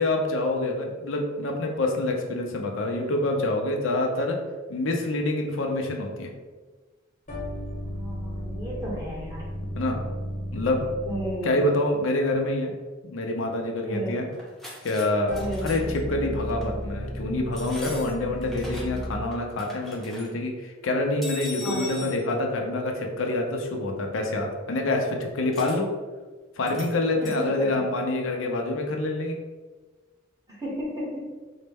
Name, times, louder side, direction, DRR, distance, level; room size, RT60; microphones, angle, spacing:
voice 1, 0.0-4.4 4.7-6.3 9.8-10.0 10.5-11.0 11.4-12.7 13.0-14.3 14.8-25.9 26.6-29.4, left 2 dB, 90° left, 2 dB, 0.6 m, -26 dB
sound 1, 7.3-11.7 15.3-19.4, equal, 40° left, 0.7 m, -34 dB
voice 2, 7.9-9.4 11.1-11.6 13.9-14.2 15.4-15.7 21.6-22.1 27.2-27.8 30.5-31.2, equal, 20° right, -6 dB, 1.1 m, -33 dB
sound 2, 14.3-15.0 15.3-16.0 16.5-16.7 17.5-19.0 19.3-20.3 21.2-22.2 25.5-25.8 26.7-26.9 27.2-27.4, left 2 dB, ahead, 0.8 m, -40 dB
4.1 x 2.1 x 3.4 m, 1.3 s
head